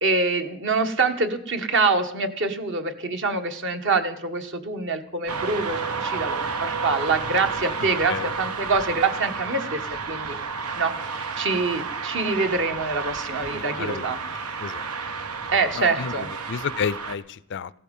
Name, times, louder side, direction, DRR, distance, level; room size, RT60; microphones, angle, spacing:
voice 1, 0.0-9.8 10.1-10.4 10.8-14.2 15.5-16.3, right 3 dB, 55° right, 1.5 m, -25 dB
sound 1, 5.3-17.2, right 5 dB, 85° right, 1.3 m, -31 dB
voice 2, 13.5-14.2 14.6-14.8 15.8-17.7, left 6 dB, 55° left, 0.5 m, -31 dB
16.0 x 13.0 x 5.4 m
head